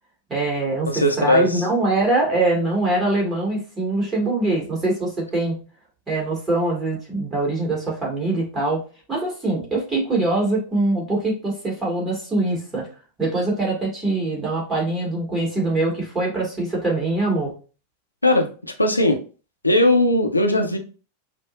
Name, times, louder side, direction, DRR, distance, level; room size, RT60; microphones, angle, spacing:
voice 1, 0.3-0.9 1.2-5.6 6.1-8.8 9.1-12.9 13.2-17.5, right 2 dB, 15° right, -4 dB, 1.9 m, -23 dB
voice 2, 0.9-1.6 18.2-18.5 18.8-19.2 19.6-20.8, left 1 dB, 85° left, 3 dB, 0.6 m, -18 dB
5.8 x 2.0 x 2.5 m, 0.36 s
figure-of-eight pair, 90°, 0 cm